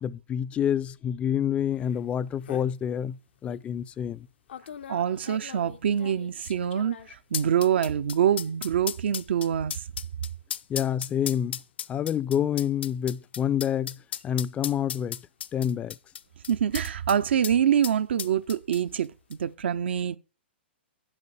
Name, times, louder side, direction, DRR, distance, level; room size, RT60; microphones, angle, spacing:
voice 1, 0.0-4.3 10.7-11.6 11.9-15.2 15.5-16.0, left 9 dB, 20° left, 0.4 m, -28 dB
sound 1, 1.9-2.0 2.3-2.7 3.4-3.6 4.5-17.2 17.4-17.6 17.8-19.0 19.3-19.4, left 10 dB, 65° left, 0.6 m, -37 dB
voice 2, 4.9-9.8 16.5-20.2, right 9 dB, 65° right, 0.5 m, -25 dB
11.0 x 5.2 x 6.8 m
hypercardioid pair, 115°, 6 cm